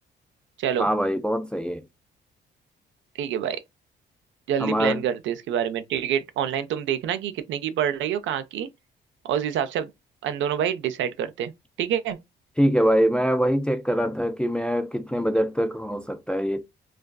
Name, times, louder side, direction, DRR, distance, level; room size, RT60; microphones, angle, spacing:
voice 1, 0.8-1.8 4.6-5.0 12.6-16.6, equal, 5° left, 0.3 m, -23 dB
voice 2, 3.2-3.6 4.5-8.7 9.2-9.9 10.2-11.5 11.8-12.2, right 9 dB, 75° right, 0.5 m, -27 dB
2.4 x 2.2 x 2.2 m
cardioid pair, 90°, 20 cm